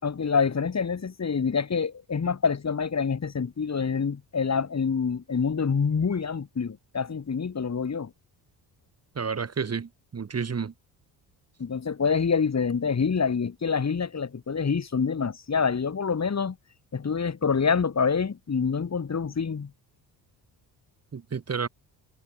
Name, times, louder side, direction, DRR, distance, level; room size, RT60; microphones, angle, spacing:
voice 1, 0.0-8.1 11.6-16.6 16.9-19.7, left 5 dB, 35° left, 5.4 m, -26 dB
voice 2, 9.2-10.7 21.1-21.7, right 6 dB, 35° right, 2.3 m, -31 dB
cardioid pair, 95°, 44 cm